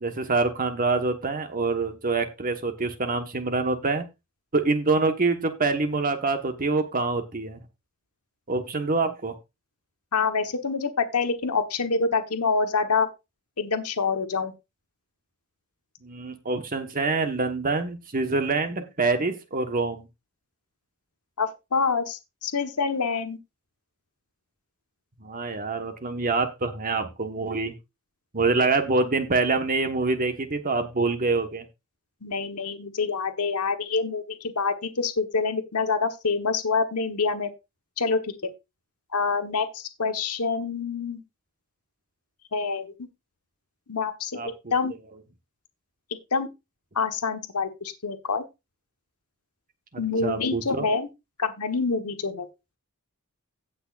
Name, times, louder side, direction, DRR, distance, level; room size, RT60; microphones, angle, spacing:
voice 1, 0.0-4.0 4.5-7.6 8.5-9.3 16.0-20.0 25.2-27.7 28.3-31.6 44.4-44.5 50.2-50.9, right 3 dB, 40° right, 1.3 m, -25 dB
voice 2, 10.1-13.1 13.6-14.5 21.4-23.4 32.2-37.5 38.0-38.5 39.1-41.2 42.5-42.9 43.9-44.4 44.7-44.9 46.3-46.5 46.9-48.4 50.0-51.1 51.4-52.5, left 4 dB, 90° left, 1.2 m, -26 dB
17.0 x 6.2 x 2.5 m
head